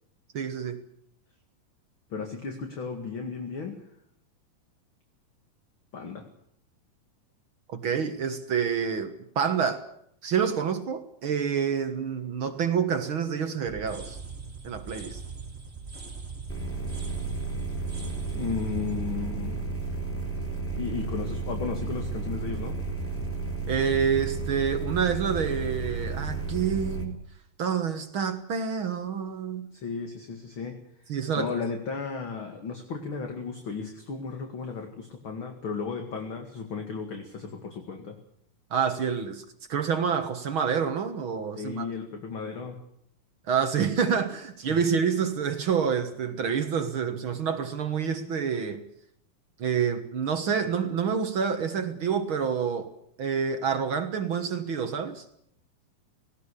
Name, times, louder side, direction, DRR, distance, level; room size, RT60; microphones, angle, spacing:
voice 1, 0.3-0.8 7.7-9.8 10.2-14.2 14.6-15.2 23.7-27.2 27.6-29.7 31.1-31.6 38.7-39.4 39.7-41.9 43.5-48.8 49.6-52.9 53.2-55.2, right 7 dB, 55° right, 1.5 m, -28 dB
voice 2, 2.1-3.8 5.9-6.2 18.3-19.7 20.8-22.8 29.7-30.8 31.4-38.2 41.5-42.8 44.7-44.8, left 5 dB, 40° left, 2.5 m, -34 dB
sound 1, 13.7-20.5, right 4 dB, 20° right, 3.8 m, -42 dB
sound 2, 16.5-27.0, right 3 dB, 5° left, 3.6 m, -32 dB
19.0 x 18.5 x 8.4 m
omnidirectional pair, 4.2 m